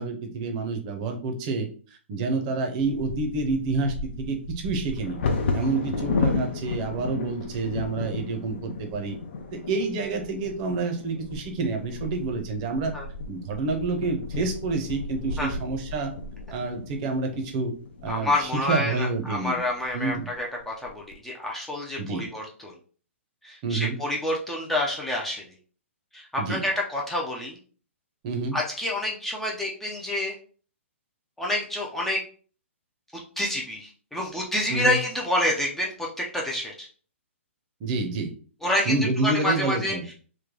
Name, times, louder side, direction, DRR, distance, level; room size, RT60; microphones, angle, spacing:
voice 1, 0.0-1.7 2.1-5.2 5.5-9.2 9.5-12.9 13.3-16.1 16.5-17.7 18.0-19.6 19.9-20.3 22.0-22.3 23.6-24.0 26.4-26.6 28.2-28.6 34.7-35.0 37.8-38.3 38.8-40.0, right 3 dB, 35° right, 5 dB, 0.7 m, -28 dB
Bird vocalization bird call bird song / Wind / Thunder, 2.8-18.7 19.3-19.4 19.8-20.2 20.6-21.1, left 3 dB, 55° left, 0.7 m, -33 dB
voice 2, 18.1-22.7 23.4-25.5 26.1-27.6 28.5-30.4 31.4-32.2 33.4-36.9 38.6-38.9 39.2-40.1, left 1 dB, 5° left, -2 dB, 0.5 m, -28 dB
3.2 x 2.2 x 3.6 m, 0.41 s
hypercardioid pair, 150°, 7 cm